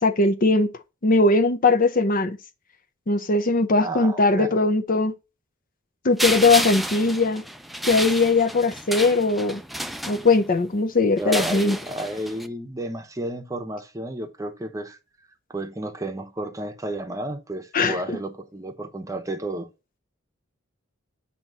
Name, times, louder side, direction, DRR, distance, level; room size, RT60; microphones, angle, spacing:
voice 1, 0.0-0.7 1.0-2.4 3.1-5.1 6.0-7.4 7.8-9.6 10.1-11.8 17.7-18.2, left 3 dB, 45° left, 0.6 m, -20 dB
voice 2, 3.8-4.5 11.2-15.0 15.5-19.7, right 1 dB, 15° right, 0.8 m, -32 dB
sound 1, 6.2-10.6 11.2-12.5, equal, ahead, 0.3 m, -30 dB
7.6 x 2.9 x 5.3 m
head